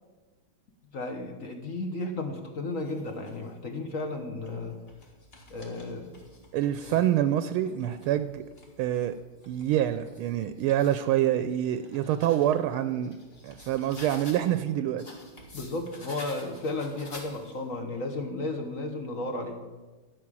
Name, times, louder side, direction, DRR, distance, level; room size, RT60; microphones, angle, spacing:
voice 1, 0.9-4.8 5.5-6.3 6.9-7.0 15.5-19.6, left 2 dB, 50° left, 4 dB, 1.2 m, -34 dB
sound 1, 2.7-3.5 4.2-7.1 7.6-11.0 11.5-14.6 15.0-17.7, left 1 dB, 30° left, 2.1 m, -50 dB
voice 2, 6.5-8.4 8.8-9.2 9.5-13.2 13.4-15.0, right 11 dB, 85° right, 11 dB, 1.4 m, -26 dB
12.5 x 5.9 x 8.8 m, 1.3 s
omnidirectional pair, 2.3 m